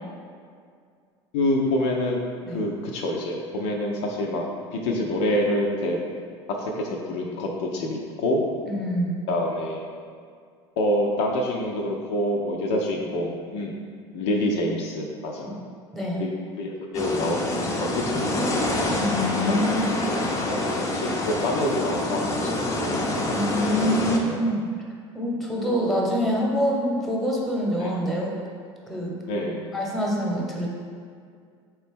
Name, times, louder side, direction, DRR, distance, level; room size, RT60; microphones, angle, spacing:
voice 1, 1.3-2.2 2.5-4.4 4.7-6.0 6.6-8.4 9.3-9.8 10.8-13.7 14.1-15.5 16.2-16.3 16.6-18.6 20.5-23.1 23.8-23.9 24.2-24.4 27.8-27.9 29.3-29.6, left 1 dB, 70° left, 0 dB, 0.5 m, -26 dB
voice 2, 8.7-9.2 15.4-15.5 15.9-16.2 19.0-19.9 23.3-24.7 25.1-28.4 28.9-29.1 29.7-30.7, equal, ahead, -3 dB, 0.9 m, -25 dB
sound 1, 16.9-24.2, left 1 dB, 20° left, 0.6 m, -26 dB
3.9 x 3.0 x 3.5 m, 2.1 s
hypercardioid pair, 75°, 15 cm